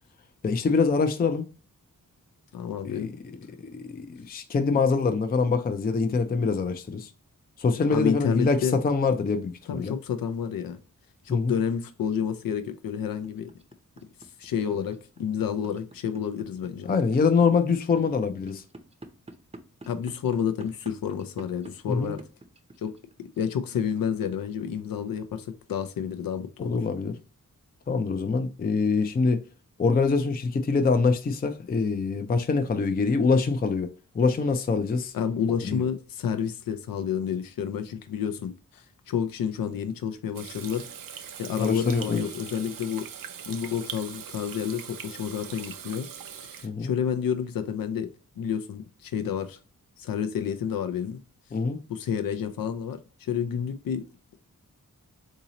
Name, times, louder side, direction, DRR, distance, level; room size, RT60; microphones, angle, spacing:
voice 1, 0.4-1.5 2.8-3.1 3.7-7.1 7.6-9.9 11.3-11.6 16.8-18.6 21.9-22.1 26.6-27.1 27.9-29.4 29.8-35.1 35.6-35.8 41.6-42.2 46.6-46.9 51.5-51.8, left 4 dB, 30° left, 0.4 m, -24 dB
voice 2, 2.5-3.1 7.9-8.8 9.7-10.8 11.2-13.5 14.4-16.9 19.9-22.2 22.8-22.9 23.4-26.8 35.1-40.9 41.4-43.1 43.5-46.1 46.4-48.1 48.4-49.6 50.0-51.2 51.9-54.0, left 8 dB, 85° left, 0.5 m, -30 dB
sound 1, 13.2-23.4, right 2 dB, 20° right, 0.6 m, -45 dB
Water tap faucet / Sink (filling or washing), 40.3-46.7, right 8 dB, 80° right, 0.5 m, -41 dB
3.8 x 2.7 x 2.8 m
wide cardioid pair, 80°, 33 cm